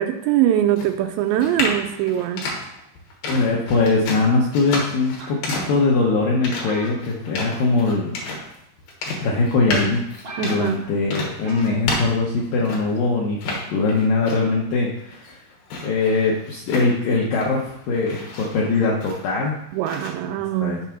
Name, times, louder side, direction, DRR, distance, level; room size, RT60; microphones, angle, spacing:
voice 1, 0.0-2.5 10.4-10.8 19.7-20.8, right 11 dB, 80° right, 6 dB, 2.7 m, -22 dB
sound 1, 0.7-13.0 13.4-14.6 15.0-17.6 17.9-19.5 19.9-20.1, left 3 dB, 60° left, 2.8 m, -31 dB
voice 2, 3.2-8.1 9.2-10.0 10.4-15.4 15.8-19.5 20.2-20.8, left 3 dB, 75° left, -3 dB, 2.0 m, -21 dB
sound 2, 5.2-5.9 6.6-7.6 7.9-8.2 9.0-9.1 9.7-9.8 9.9-10.0 10.2-10.9 11.4-11.8 12.1-12.2, right 2 dB, 50° right, 4.6 m, -38 dB
7.3 x 4.6 x 5.8 m, 0.82 s
omnidirectional pair, 5.2 m